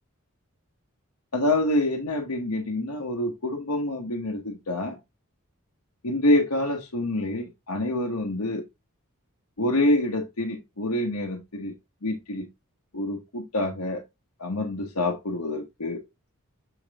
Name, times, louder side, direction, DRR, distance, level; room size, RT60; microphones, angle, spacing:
voice 1, 1.3-5.0 6.0-8.6 9.6-11.7 12.0-12.5 12.9-14.0 14.4-16.0, left 1 dB, 85° left, 1.3 m, -26 dB
7.2 x 4.8 x 3.5 m
head